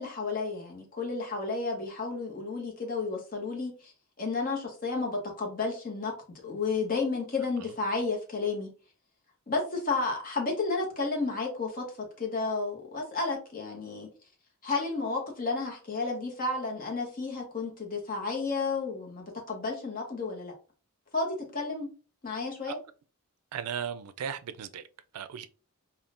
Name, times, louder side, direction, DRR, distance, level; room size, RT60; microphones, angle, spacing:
voice 1, 0.0-3.9 4.2-6.1 6.4-8.7 9.5-11.8 12.2-14.1 14.6-20.5 21.1-21.9 22.2-22.8, left 3 dB, 40° left, 0.8 m, -32 dB
voice 2, 23.5-24.8 25.1-25.5, right 8 dB, 90° right, 0.4 m, -36 dB
3.6 x 2.3 x 2.4 m
head